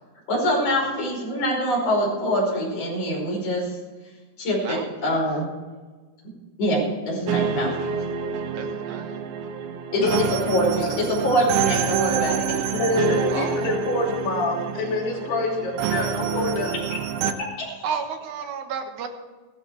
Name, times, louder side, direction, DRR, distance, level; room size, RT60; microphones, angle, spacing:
voice 1, 0.3-3.7 4.4-5.5 6.6-7.9 9.9-12.8 16.7-16.8 17.6-17.8, equal, 40° left, -3 dB, 6.1 m, -24 dB
voice 2, 4.6-5.1 8.5-9.2 13.3-13.7 17.8-19.1, right 6 dB, 65° right, 5 dB, 2.3 m, -32 dB
sound 1, 7.3-17.3, right 7 dB, 85° right, 2.8 m, -27 dB
voice 3, 12.7-17.0, left 3 dB, 85° left, -2 dB, 5.1 m, -26 dB
16.0 x 13.0 x 4.6 m, 1.3 s
omnidirectional pair, 4.5 m